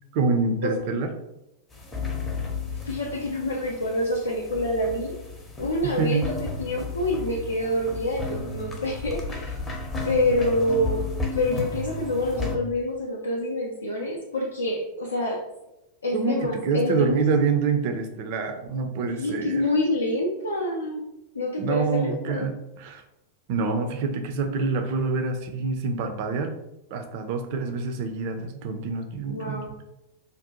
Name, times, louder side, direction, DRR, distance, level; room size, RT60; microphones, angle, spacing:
voice 1, 0.1-1.1 5.8-6.2 16.1-19.6 21.6-23.0 23.5-26.5 26.9-29.8, right 4 dB, 45° right, 6 dB, 0.3 m, -26 dB
sound 1, 1.7-12.6, left 3 dB, 20° left, 0.6 m, -33 dB
voice 2, 2.8-5.2 5.6-6.3 6.6-9.6 10.0-11.0 11.3-15.4 16.0-17.2 19.1-21.0 21.3-22.5 29.3-29.7, left 1 dB, 75° left, -3 dB, 0.4 m, -27 dB
2.5 x 2.1 x 2.7 m, 0.89 s
figure-of-eight pair, 90°, 0 cm